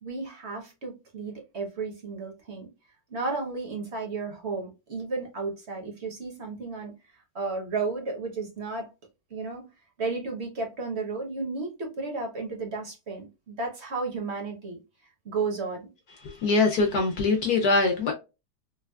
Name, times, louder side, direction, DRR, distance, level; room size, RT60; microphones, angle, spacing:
voice 1, 0.0-2.7 3.1-6.9 7.3-8.9 9.3-9.7 10.0-14.8 15.2-15.9, right 3 dB, 45° right, 1.0 m, -33 dB
voice 2, 16.2-18.1, left 3 dB, 65° left, 1.0 m, -23 dB
3.9 x 2.3 x 2.2 m
omnidirectional pair, 2.1 m